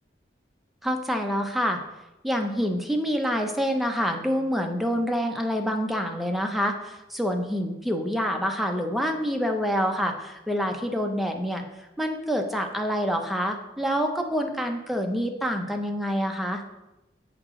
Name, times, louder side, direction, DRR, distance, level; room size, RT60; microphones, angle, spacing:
voice 1, 0.8-1.8 2.2-11.6 12.0-16.6, equal, ahead, 3 dB, 0.6 m, -27 dB
6.5 x 4.8 x 3.7 m, 0.95 s
head